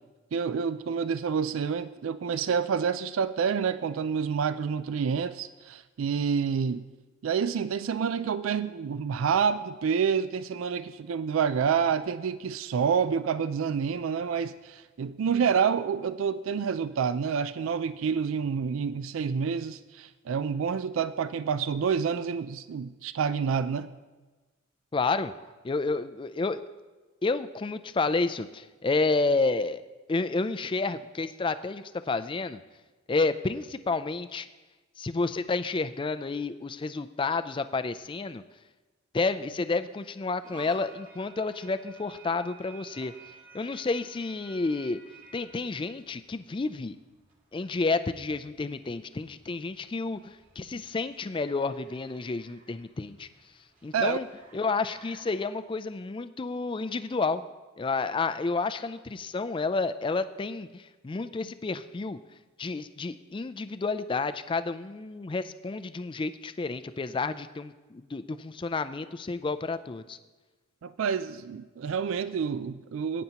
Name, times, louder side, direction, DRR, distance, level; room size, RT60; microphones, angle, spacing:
voice 1, 0.3-6.9 7.2-23.9 53.9-54.2 70.8-73.2, right 6 dB, 75° right, 13 dB, 0.4 m, -28 dB
voice 2, 24.9-25.3 25.6-26.6 27.2-29.8 30.1-32.6 33.1-34.5 35.0-38.4 39.1-43.1 43.5-45.0 45.3-47.0 47.5-53.3 53.8-54.3 54.5-57.4 57.8-62.2 62.6-70.2, left 3 dB, 25° left, 11 dB, 0.4 m, -30 dB
sound 1, 40.4-55.5, right 3 dB, 40° right, 2.0 m, -54 dB
17.5 x 9.3 x 2.9 m, 1.2 s
head